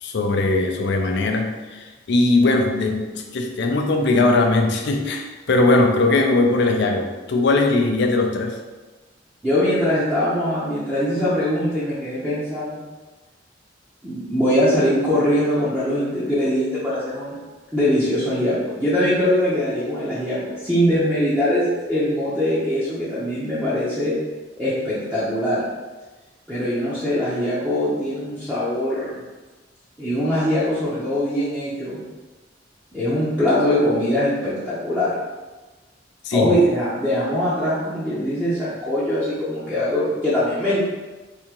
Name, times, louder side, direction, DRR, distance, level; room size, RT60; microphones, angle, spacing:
voice 1, 0.0-8.6 36.2-36.6, left 2 dB, 65° left, 3 dB, 0.5 m, -20 dB
voice 2, 9.4-12.8 14.0-17.4 17.7-24.2 24.6-25.6 26.5-29.2 30.0-32.0 32.9-35.1 36.3-40.8, equal, 5° right, -12 dB, 0.7 m, -22 dB
3.5 x 2.8 x 2.9 m, 1.2 s
head